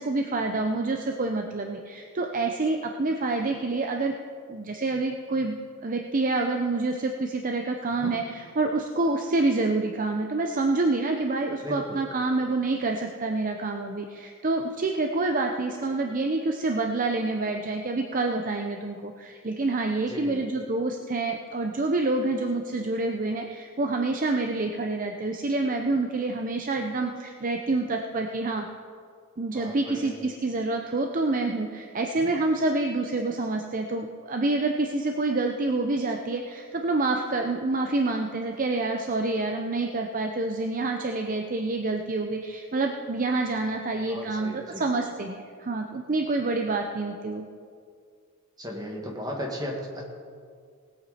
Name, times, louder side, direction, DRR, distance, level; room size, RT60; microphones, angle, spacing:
voice 1, 0.0-4.1 4.5-28.7 29.4-47.5, right 2 dB, 40° right, 4 dB, 0.6 m, -27 dB
voice 2, 11.6-12.0 20.1-20.4 29.5-30.1 44.1-44.9 48.6-50.1, equal, 20° right, -1 dB, 1.9 m, -36 dB
19.0 x 8.4 x 4.2 m, 2.2 s
head